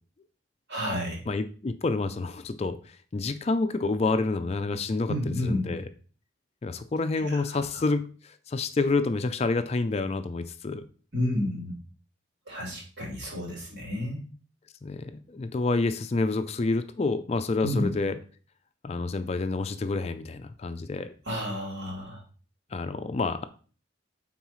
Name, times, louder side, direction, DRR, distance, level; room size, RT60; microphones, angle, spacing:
voice 1, 0.7-1.2 5.1-5.7 7.1-7.8 11.1-11.7 12.5-14.2 17.6-17.9 21.3-22.2, left 1 dB, 65° right, -4 dB, 3.1 m, -31 dB
voice 2, 1.3-2.8 3.1-5.9 6.6-10.8 14.8-18.2 18.8-21.1 22.7-23.4, left 3 dB, 35° left, 10 dB, 0.4 m, -28 dB
9.2 x 4.1 x 3.1 m, 0.40 s
head